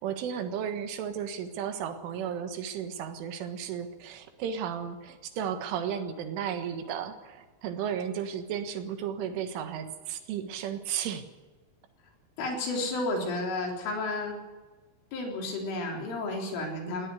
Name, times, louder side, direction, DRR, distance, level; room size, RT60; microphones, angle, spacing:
voice 1, 0.0-11.2, right 8 dB, 75° right, 7 dB, 3.9 m, -34 dB
voice 2, 12.4-14.3 15.1-17.1, left 2 dB, 75° left, 1 dB, 6.3 m, -32 dB
18.5 x 17.5 x 9.4 m, 1.3 s
omnidirectional pair, 5.8 m